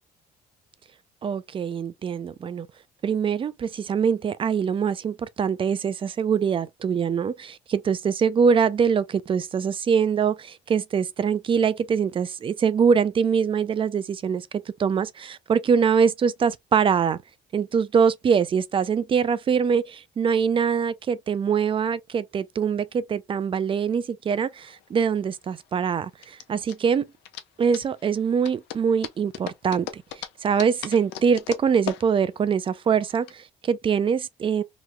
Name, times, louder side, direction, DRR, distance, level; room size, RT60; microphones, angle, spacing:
voice 1, 1.2-2.7 3.0-14.5 14.8-17.2 17.5-27.1 27.6-34.6, right 6 dB, 30° right, 0.4 m, -23 dB
sound 1, 24.4-33.3, left 11 dB, 90° left, 0.5 m, -39 dB
3.0 x 2.0 x 3.4 m
cardioid pair, 110°, 17 cm